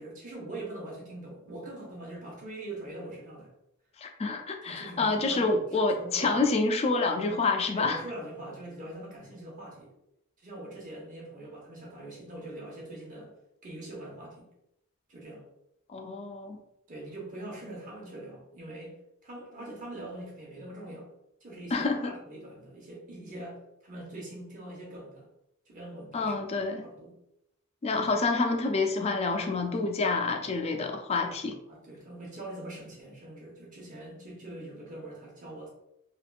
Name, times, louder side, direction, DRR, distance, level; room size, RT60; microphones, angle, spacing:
voice 1, 0.0-3.5 4.6-5.6 5.9-6.5 7.7-9.9 10.4-13.3 13.6-14.5 15.1-15.4 16.9-19.0 19.2-21.1 21.4-25.3 25.6-26.4 26.8-27.2 31.7-35.7, right 1 dB, 40° right, -3 dB, 1.0 m, -43 dB
voice 2, 4.0-8.0 15.9-16.6 21.7-22.1 26.1-26.9 27.8-31.5, left 3 dB, 30° left, 4 dB, 0.4 m, -28 dB
3.4 x 2.4 x 2.4 m, 0.80 s
head